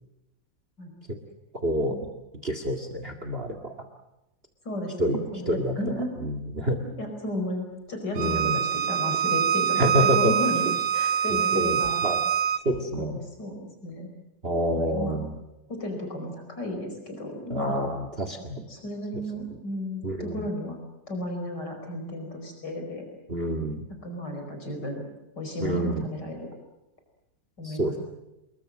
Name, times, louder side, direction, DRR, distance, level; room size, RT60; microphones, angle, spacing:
voice 1, 1.6-2.1 2.4-3.9 5.0-6.8 8.2-8.6 9.8-10.3 10.7-10.8 11.3-12.2 12.6-13.2 14.4-15.4 17.5-18.7 19.1-19.2 20.0-20.5 23.3-23.8 25.6-26.1 27.6-28.0, equal, 35° right, 7 dB, 2.3 m, -28 dB
voice 2, 4.7-6.1 7.0-10.6 10.9-12.0 12.7-14.1 14.8-15.2 15.7-17.9 18.7-20.8 21.1-23.0 24.0-25.0 25.4-26.4 27.6-27.9, left 1 dB, 70° left, 3 dB, 5.7 m, -34 dB
Bowed string instrument, 8.2-12.6, right 8 dB, 60° right, 1.6 m, -25 dB
28.5 x 21.5 x 7.7 m, 0.94 s
omnidirectional pair, 1.9 m